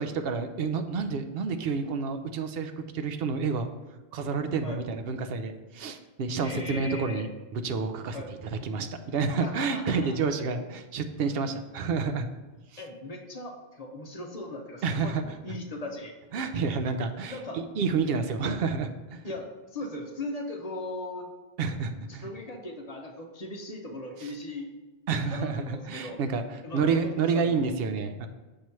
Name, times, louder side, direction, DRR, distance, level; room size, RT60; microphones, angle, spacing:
voice 1, 0.0-3.7 4.1-8.4 8.6-12.3 12.7-12.8 14.8-15.4 16.3-19.2 21.6-22.3 24.2-24.3 25.1-26.4 26.7-28.3, right 5 dB, 65° right, 8 dB, 0.7 m, -29 dB
voice 2, 6.4-7.2 8.1-8.3 9.4-10.2 12.8-16.1 17.3-17.6 19.2-21.3 22.1-24.7 25.3-26.2 26.6-27.7, left 2 dB, 40° left, 2 dB, 0.8 m, -38 dB
6.6 x 3.1 x 5.6 m, 1.2 s
omnidirectional pair, 1.1 m